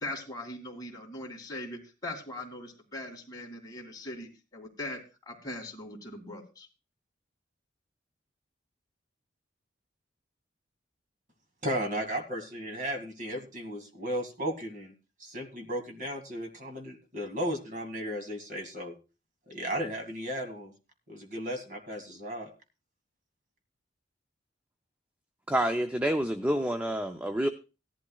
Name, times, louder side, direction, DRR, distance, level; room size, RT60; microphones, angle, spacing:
voice 1, 0.0-5.0 5.3-6.7, left 1 dB, 20° left, 0 dB, 2.4 m, -40 dB
voice 2, 11.6-14.9 15.2-18.9 19.5-20.7 21.1-22.5, equal, 45° right, 6 dB, 2.1 m, -35 dB
voice 3, 25.5-27.5, right 1 dB, 10° right, 7 dB, 0.5 m, -28 dB
16.5 x 11.5 x 2.3 m, 0.30 s
head